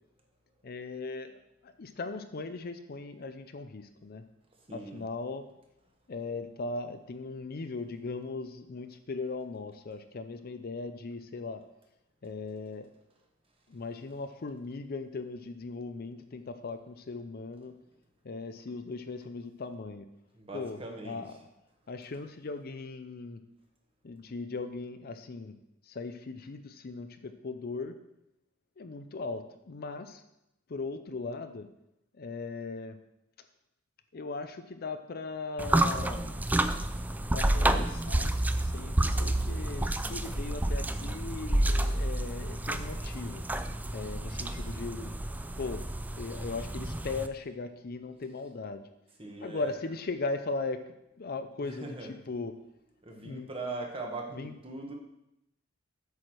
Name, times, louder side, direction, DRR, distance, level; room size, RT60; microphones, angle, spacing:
voice 1, 0.6-4.2 4.7-5.5 6.1-11.6 12.2-12.9 13.7-17.8 18.2-20.1 20.5-21.5 21.9-23.4 24.0-25.6 25.8-28.0 28.8-30.2 30.7-31.7 32.1-33.0 34.1-36.4 37.0-38.3 38.6-43.4 43.9-45.1 45.6-45.8 46.2-48.9 49.4-52.0 52.3-52.5 53.2-53.5 54.3-54.5, left 3 dB, 50° left, 9 dB, 0.5 m, -38 dB
voice 2, 4.7-5.0 20.3-21.2 43.2-43.4 49.2-49.7 51.6-52.1 53.0-54.9, right 3 dB, 30° right, 1 dB, 1.4 m, -40 dB
sound 1, 35.6-47.3, right 1 dB, 10° right, 0.3 m, -30 dB
8.3 x 4.9 x 6.1 m, 0.84 s
head